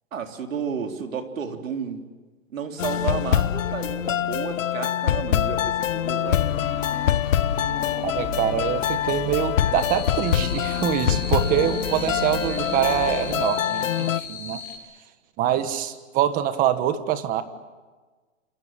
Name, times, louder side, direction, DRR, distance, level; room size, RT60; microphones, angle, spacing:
voice 1, 0.1-2.0 2.5-6.4, right 6 dB, 80° right, 4 dB, 3.8 m, -32 dB
sound 1, 2.8-14.2, left 10 dB, 75° left, 1.0 m, -25 dB
sound 2, 6.2-13.5, left 3 dB, 20° left, 6.1 m, -34 dB
voice 2, 8.0-14.6 15.4-17.4, right 11 dB, 20° right, 11 dB, 1.4 m, -25 dB
sound 3, 9.7-14.7, left 2 dB, 5° left, 7.8 m, -37 dB
28.0 x 27.5 x 7.5 m, 1.3 s
hypercardioid pair, 150°, 39 cm